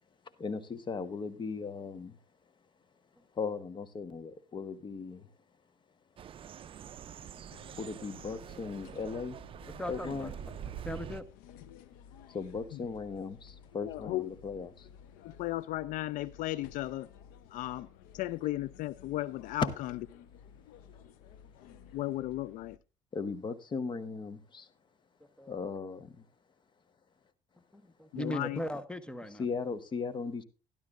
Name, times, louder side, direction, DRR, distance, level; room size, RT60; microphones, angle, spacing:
voice 1, 0.4-2.2 3.3-5.3 7.8-9.4 9.9-10.3 12.3-14.9 23.1-24.7 25.5-26.2 29.3-30.4, left 5 dB, 35° left, 1.2 m, -37 dB
sound 1, 6.2-11.2, right 9 dB, 40° right, 0.5 m, -45 dB
sound 2, 7.5-22.8, left 8 dB, 85° left, 0.8 m, -55 dB
voice 2, 9.8-10.3 10.8-11.3 25.4-25.5 27.7-29.4, equal, 5° left, 1.0 m, -38 dB
voice 3, 13.8-14.3 15.2-17.1 17.5-17.9 18.1-19.7 21.9-22.8 28.1-28.6, left 16 dB, 70° left, 0.4 m, -35 dB
12.0 x 12.0 x 2.5 m
cardioid pair, 100°, 14 cm